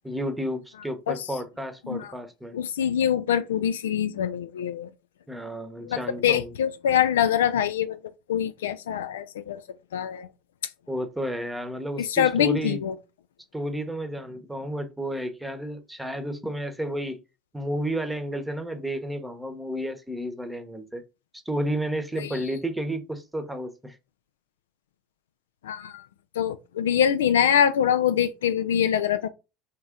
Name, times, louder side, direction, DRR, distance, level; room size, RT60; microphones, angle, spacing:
voice 1, 0.0-2.6 5.3-6.5 10.9-12.8 13.5-17.2 17.5-21.0 21.4-24.0, right 1 dB, 5° right, 0.9 m, -31 dB
voice 2, 2.5-4.9 5.9-8.0 8.3-9.6 9.9-10.3 12.0-12.9 25.6-26.0 26.4-29.3, left 9 dB, 75° left, 0.3 m, -24 dB
3.6 x 2.9 x 3.6 m
hypercardioid pair, 70°, 0 cm